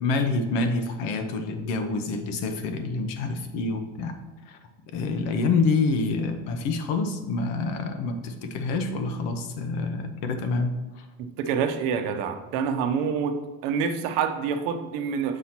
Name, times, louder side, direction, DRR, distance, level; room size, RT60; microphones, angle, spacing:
voice 1, 0.0-4.1 4.5-4.6 4.9-11.1, left 3 dB, 65° left, 7 dB, 0.9 m, -27 dB
voice 2, 11.2-15.4, right 6 dB, 75° right, 8 dB, 0.8 m, -27 dB
7.0 x 2.8 x 5.9 m, 1.2 s
cardioid pair, 155°, 35 cm